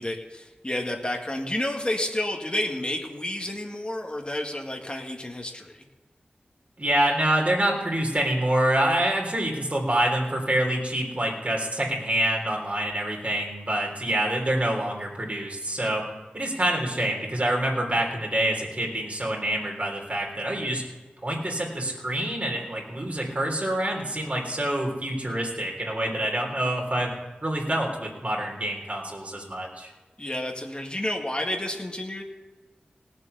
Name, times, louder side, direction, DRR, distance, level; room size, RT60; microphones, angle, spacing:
voice 1, 0.0-5.8 30.2-32.2, left 1 dB, 30° left, 1 dB, 1.8 m, -30 dB
voice 2, 6.8-16.0 16.3-20.8 21.2-27.1 27.4-29.9, right 1 dB, 45° right, -1 dB, 3.6 m, -26 dB
18.0 x 7.6 x 6.8 m, 1.3 s
wide cardioid pair, 50°, 3 cm